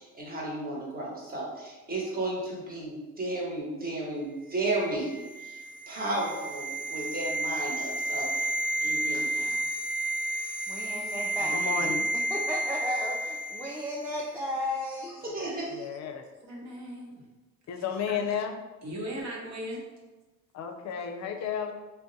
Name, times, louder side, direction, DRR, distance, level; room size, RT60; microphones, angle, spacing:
voice 1, 0.0-8.5 8.8-9.6 15.2-15.7, right 2 dB, 30° right, -3 dB, 1.0 m, -34 dB
sound 1, 4.7-14.0 14.2-14.4, right 1 dB, 85° right, 0.6 m, -31 dB
voice 2, 10.7-15.2 15.6-15.7, left 1 dB, 5° right, -4 dB, 0.4 m, -35 dB
voice 3, 11.5-12.0 15.7-16.2 17.7-18.6 20.5-21.7, left 7 dB, 65° left, 5 dB, 0.5 m, -32 dB
voice 4, 16.4-17.3 17.8-17.9 18.2-18.3 18.8-19.8, equal, 65° right, -2 dB, 1.0 m, -39 dB
2.5 x 2.1 x 3.9 m, 1.2 s
cardioid pair, 90°, 30 cm